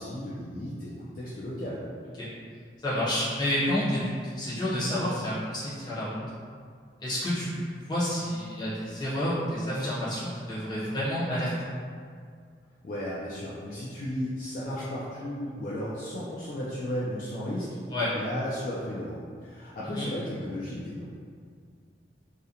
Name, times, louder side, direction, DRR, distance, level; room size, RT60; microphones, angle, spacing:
voice 1, 0.0-1.8 12.8-17.8 18.1-21.0, equal, 50° left, -8 dB, 0.3 m, -34 dB
voice 2, 2.8-6.2 7.0-11.7 17.9-18.1 19.9-20.1, left 1 dB, 25° left, -10 dB, 0.7 m, -29 dB
2.4 x 2.1 x 2.7 m, 2.1 s
head